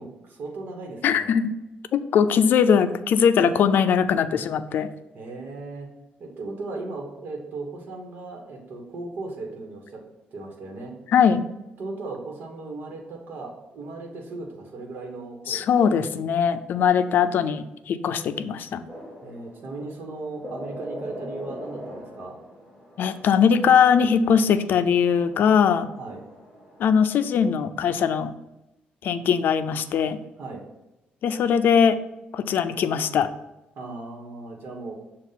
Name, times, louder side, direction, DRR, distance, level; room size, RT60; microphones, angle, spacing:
voice 1, 0.0-1.4 5.1-5.9 6.2-10.0 10.3-10.9 11.8-15.6 19.2-22.4 26.0-26.2 30.4-30.6 33.7-34.9, right 3 dB, 60° right, 1 dB, 1.3 m, -37 dB
voice 2, 1.0-1.5 1.9-4.9 11.1-11.4 15.5-18.8 23.0-25.9 26.8-28.3 29.0-30.2 31.2-32.0 32.3-33.3, left 7 dB, 65° left, 10 dB, 0.4 m, -20 dB
sound 1, 18.9-26.8, equal, 10° right, 2.1 m, -42 dB
7.1 x 2.5 x 5.6 m, 0.96 s
cardioid pair, 115°, 4 cm